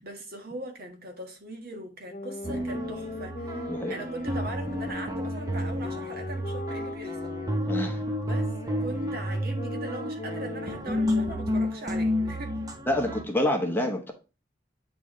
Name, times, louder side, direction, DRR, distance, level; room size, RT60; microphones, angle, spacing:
voice 1, 0.0-7.3 8.2-12.6, right 1 dB, 55° right, 1.5 m, -40 dB
sound 1, 2.1-11.8, left 3 dB, 40° left, 0.6 m, -40 dB
sound 2, 2.4-13.2, equal, 20° right, 0.8 m, -31 dB
voice 2, 7.7-8.3 12.9-14.1, left 1 dB, 10° left, 0.8 m, -28 dB
8.7 x 3.2 x 3.7 m
head